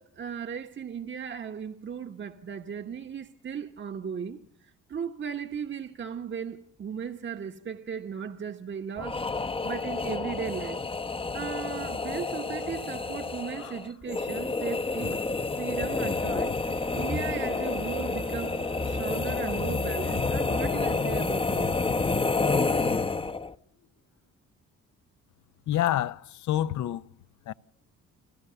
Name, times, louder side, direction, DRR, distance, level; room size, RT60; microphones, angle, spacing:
voice 1, 0.0-10.8 11.3-15.2 15.6-18.6 18.8-21.7, right 7 dB, 40° right, 1.2 m, -37 dB
sound 1, 9.0-23.5, left 3 dB, 20° left, 0.8 m, -29 dB
sound 2, 12.6-26.3, left 7 dB, 90° left, 3.9 m, -62 dB
sound 3, 16.6-19.5, right 4 dB, 15° right, 0.8 m, -43 dB
voice 2, 25.7-27.0 27.5-27.6, left 12 dB, 75° left, 0.8 m, -27 dB
29.5 x 15.5 x 6.9 m
cardioid pair, 90°, 30 cm